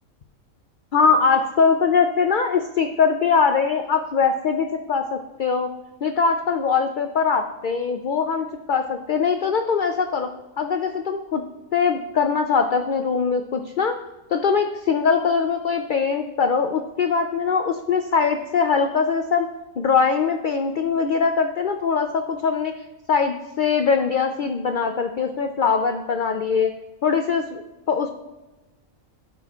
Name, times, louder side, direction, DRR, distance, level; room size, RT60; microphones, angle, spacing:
voice 1, 0.9-5.7 6.0-10.3 10.6-11.4 11.7-14.0 14.3-19.5 19.8-22.7 23.1-26.7 27.0-28.1, left 5 dB, 70° left, 6 dB, 0.4 m, -22 dB
16.0 x 6.1 x 2.4 m, 1.1 s
omnidirectional pair, 1.4 m